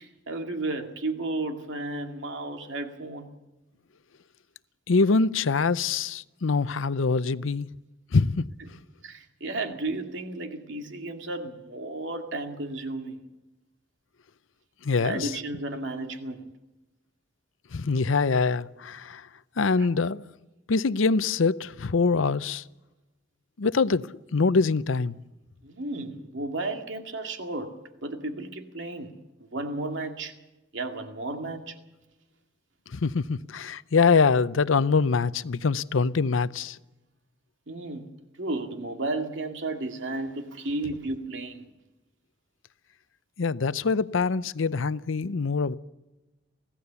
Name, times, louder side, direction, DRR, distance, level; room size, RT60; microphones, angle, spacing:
voice 1, 0.0-3.3 9.0-13.2 15.0-16.4 19.8-19.9 25.6-27.8 28.0-29.1 29.5-30.3 30.7-31.8 37.7-38.1 38.4-41.7, right 2 dB, 75° right, 2.3 m, -33 dB
voice 2, 4.9-7.7 8.1-8.5 14.8-15.3 17.7-19.3 19.6-20.2 20.7-22.6 23.6-25.2 32.9-36.8 43.4-45.8, left 4 dB, 90° left, 0.6 m, -24 dB
25.0 x 16.0 x 7.0 m
head